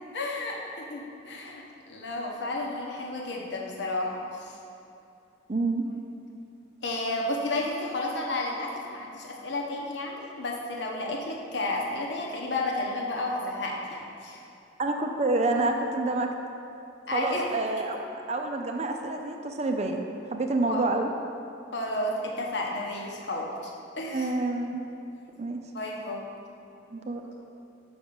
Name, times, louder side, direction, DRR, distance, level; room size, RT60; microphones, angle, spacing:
voice 1, 0.1-4.6 6.8-14.4 17.1-17.5 20.7-20.8 21.7-24.3 25.7-26.3, left 2 dB, 60° left, -1 dB, 1.1 m, -32 dB
voice 2, 5.5-5.9 14.8-16.3 17.1-20.0 20.3-21.1 24.1-24.8 25.4-25.6 26.9-27.3, right 2 dB, 35° right, 4 dB, 0.5 m, -28 dB
6.1 x 5.3 x 7.0 m, 2.7 s
head